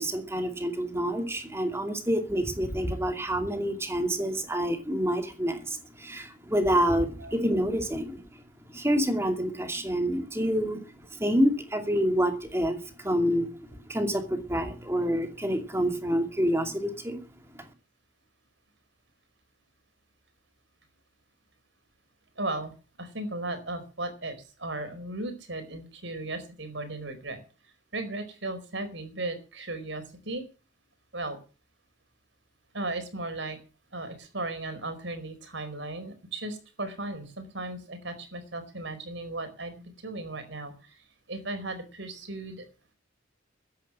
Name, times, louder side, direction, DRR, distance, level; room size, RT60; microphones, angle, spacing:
voice 1, 0.0-8.2 8.7-10.8 11.1-13.5 13.9-17.2 17.5-17.6, equal, 15° right, 5 dB, 2.5 m, -27 dB
voice 2, 22.3-27.4 27.9-30.4 31.1-31.4 32.7-33.6 33.9-42.7, right 2 dB, 75° right, 9 dB, 4.6 m, -36 dB
13.5 x 10.5 x 7.4 m, 0.35 s
head